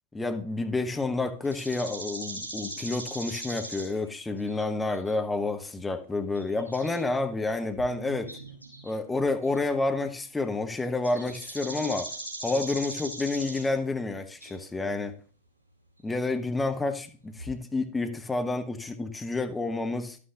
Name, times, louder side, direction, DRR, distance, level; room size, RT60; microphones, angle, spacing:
voice 1, 0.1-8.4 8.8-12.1 12.4-15.1 16.0-20.2, left 3 dB, 10° left, 0.8 m, -29 dB
sound 1, 1.4-3.9 4.2-4.6 4.9-5.1 6.3-7.1 7.5-8.9 9.4-9.6 11.0-13.7 14.4-14.6 17.3-17.5, right 1 dB, 85° right, 3.5 m, -40 dB
11.0 x 8.4 x 2.4 m
figure-of-eight pair, 90°, 0 cm